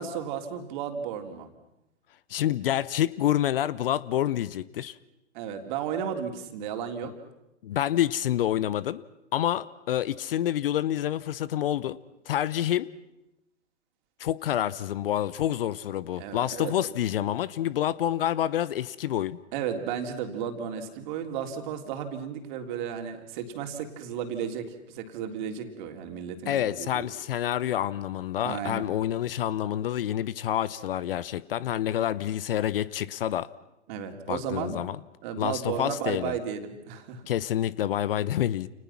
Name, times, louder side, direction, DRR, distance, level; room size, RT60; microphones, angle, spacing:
voice 1, 0.0-1.5 5.3-7.1 16.1-16.8 19.5-27.1 28.4-28.9 33.9-34.8 35.2-37.2, right 8 dB, 40° right, 4 dB, 3.5 m, -34 dB
voice 2, 2.3-5.0 7.0-7.1 7.6-9.0 9.3-12.0 12.3-12.9 14.2-19.4 26.5-33.5 34.3-35.0 35.4-36.3 37.3-38.7, left 11 dB, 50° left, 19 dB, 0.9 m, -28 dB
30.0 x 29.5 x 6.0 m, 0.89 s
figure-of-eight pair, 115°, 36 cm